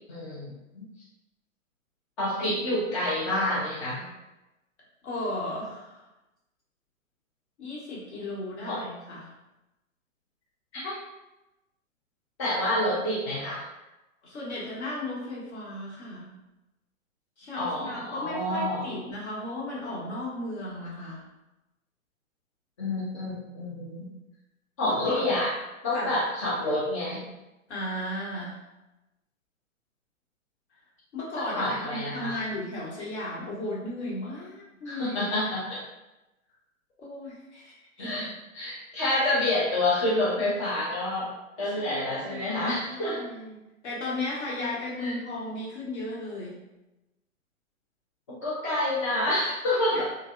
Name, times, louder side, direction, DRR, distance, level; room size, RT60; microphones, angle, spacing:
voice 1, 0.1-0.9 2.2-4.1 8.7-8.8 10.8-10.9 12.4-13.6 17.6-18.9 22.8-24.1 24.8-25.5 25.8-27.2 31.4-32.4 34.9-35.8 38.0-38.3 38.5-41.3 41.6-43.3 45.0-45.2 48.4-50.0, left 1 dB, 25° left, -7 dB, 0.4 m, -28 dB
voice 2, 5.0-6.0 7.6-9.3 14.2-16.3 17.4-21.3 24.8-25.3 25.9-26.1 27.7-28.6 31.1-35.2 37.0-38.3 41.6-46.6 49.9-50.0, left 1 dB, 55° left, -5 dB, 1.3 m, -35 dB
3.2 x 2.1 x 2.4 m, 0.97 s
figure-of-eight pair, 120°, 41 cm